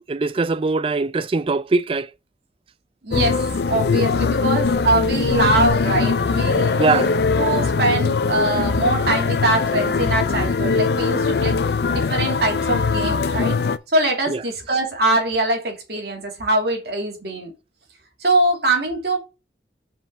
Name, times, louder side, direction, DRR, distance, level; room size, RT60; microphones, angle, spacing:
voice 1, 0.1-2.1 6.8-7.1 14.3-14.4, right 3 dB, 30° right, 0.4 m, -21 dB
voice 2, 3.0-11.6 11.9-13.6 13.9-17.5 18.2-19.2, right 2 dB, 60° right, 2.7 m, -22 dB
sound 1, 3.1-13.8, left 4 dB, 60° left, 0.5 m, -21 dB
5.7 x 4.9 x 4.6 m
head